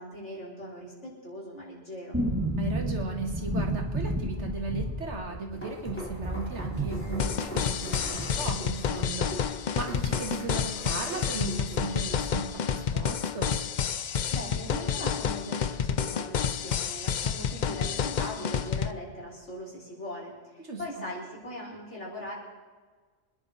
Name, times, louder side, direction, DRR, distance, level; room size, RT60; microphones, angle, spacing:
voice 1, 0.0-2.2 14.3-22.3, equal, 90° left, -5 dB, 5.5 m, -40 dB
sound 1, 2.1-11.0 11.2-11.3 11.6-12.6 12.9-13.0, right 1 dB, 15° right, 1.6 m, -34 dB
voice 2, 2.6-13.6 20.6-21.0, right 3 dB, 80° right, 2 dB, 2.4 m, -36 dB
sound 2, 5.5-12.2, equal, 10° left, 3.4 m, -40 dB
sound 3, 7.2-18.9, left 7 dB, 50° left, 0.6 m, -29 dB
25.5 x 10.5 x 4.3 m, 1.4 s
omnidirectional pair, 1.2 m